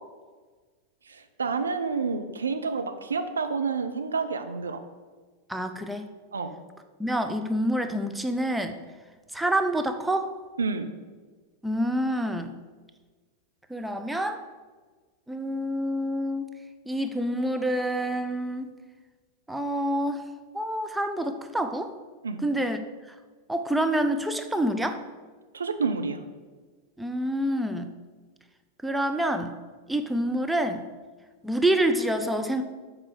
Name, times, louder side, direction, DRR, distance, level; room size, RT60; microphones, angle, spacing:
voice 1, 1.1-4.8 6.3-6.5 10.6-10.9 22.2-22.4 25.5-26.2, right 4 dB, 70° right, 7 dB, 0.7 m, -29 dB
voice 2, 5.5-6.1 7.0-8.8 9.3-10.3 11.6-12.5 13.7-14.4 15.3-16.5 16.9-18.7 19.5-20.2 20.5-21.9 22.4-22.8 23.5-25.0 27.0-27.9 28.8-29.5 29.9-30.8 31.4-32.6, right 1 dB, 5° right, 7 dB, 0.5 m, -27 dB
7.4 x 4.8 x 6.6 m, 1.4 s
figure-of-eight pair, 90°, 0 cm